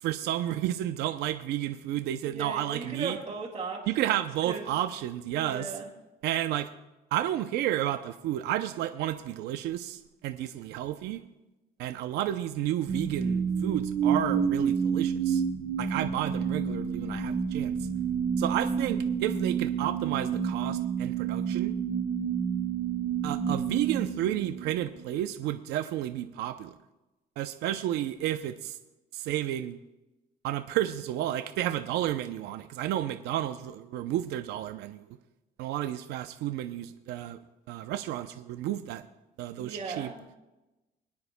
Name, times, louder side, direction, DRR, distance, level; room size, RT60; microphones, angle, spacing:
voice 1, 0.0-3.2 3.9-5.7 6.2-6.7 7.1-11.2 11.8-15.4 15.8-17.9 18.4-21.7 23.2-26.7 27.4-28.8 29.1-29.8 30.4-35.1 35.6-37.4 37.7-39.0 39.4-40.1, right 12 dB, 85° right, 8 dB, 0.6 m, -31 dB
voice 2, 2.2-4.0 4.5-4.7 5.4-5.9 39.6-40.4, right 4 dB, 35° right, -5 dB, 2.1 m, -37 dB
sound 1, 12.9-25.0, right 7 dB, 65° right, 1.4 m, -29 dB
25.5 x 9.6 x 2.2 m, 1.0 s
cardioid pair, 110°, 17 cm